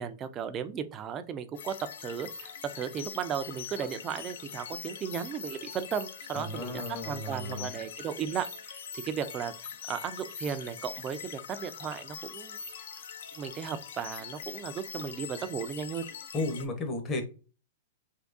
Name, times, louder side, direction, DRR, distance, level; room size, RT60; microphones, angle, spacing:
voice 1, 0.0-12.6 13.4-16.1, right 8 dB, 20° right, 0.4 m, -35 dB
sound 1, 1.5-16.6, left 7 dB, 70° left, 0.5 m, -43 dB
voice 2, 6.3-7.7 16.3-17.2, left 2 dB, 25° left, 0.8 m, -34 dB
3.5 x 2.7 x 2.5 m
hypercardioid pair, 150°, 0 cm